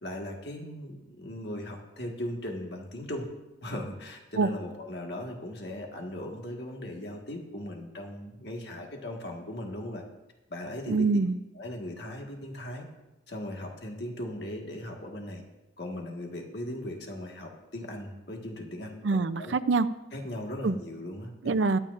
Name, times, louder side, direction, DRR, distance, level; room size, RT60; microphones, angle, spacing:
voice 1, 0.0-3.3 3.6-10.0 10.5-11.1 11.5-12.8 13.3-15.4 15.8-19.5 20.1-21.5, left 1 dB, 55° left, 1 dB, 1.6 m, -38 dB
voice 2, 10.9-11.4 19.0-19.9 20.6-20.7 21.4-21.8, right 3 dB, 70° right, 13 dB, 0.5 m, -25 dB
22.5 x 8.8 x 2.5 m, 1.0 s
head